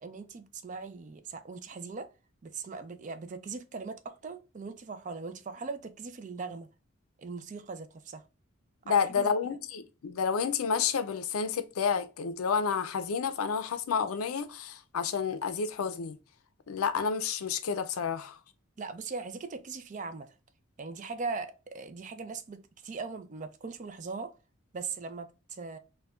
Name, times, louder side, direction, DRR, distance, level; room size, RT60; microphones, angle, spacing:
voice 1, 0.0-2.1 2.4-6.7 7.2-8.2 8.9-9.3 18.8-20.3 20.8-24.3 24.7-25.8, right 4 dB, 35° right, 0.4 m, -40 dB
voice 2, 8.9-16.2 16.7-18.3, left 6 dB, 85° left, 0.4 m, -30 dB
4.2 x 2.2 x 2.3 m
head